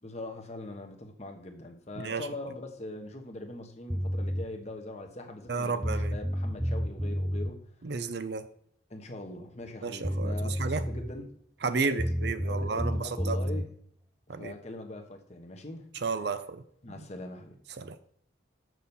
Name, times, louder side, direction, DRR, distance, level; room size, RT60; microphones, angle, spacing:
voice 1, 0.0-7.6 8.9-11.4 11.6-12.1 12.4-13.7 14.4-15.9 16.8-17.6, left 2 dB, 35° left, 1.1 m, -42 dB
voice 2, 2.0-2.3 5.5-6.1 7.8-8.4 9.8-10.8 11.6-13.4 14.3-14.5 16.0-16.6 17.8-18.0, right 4 dB, 55° right, 0.5 m, -32 dB
sound 1, 3.9-4.5 5.5-5.6 5.8-7.5 9.7-9.8 10.0-11.2 12.0-13.7, equal, 5° right, 0.4 m, -30 dB
6.2 x 5.6 x 7.1 m
head